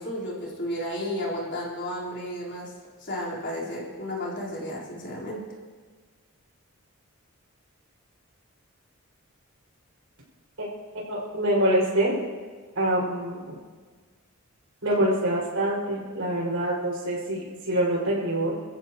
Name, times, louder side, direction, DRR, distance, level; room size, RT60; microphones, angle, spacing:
voice 1, 0.0-2.7 3.0-5.4, left 1 dB, 50° left, -5 dB, 4.4 m, -33 dB
voice 2, 11.1-12.1 12.8-13.6 14.8-18.5, right 1 dB, 70° right, -5 dB, 6.0 m, -25 dB
28.5 x 14.5 x 3.1 m, 1.5 s
head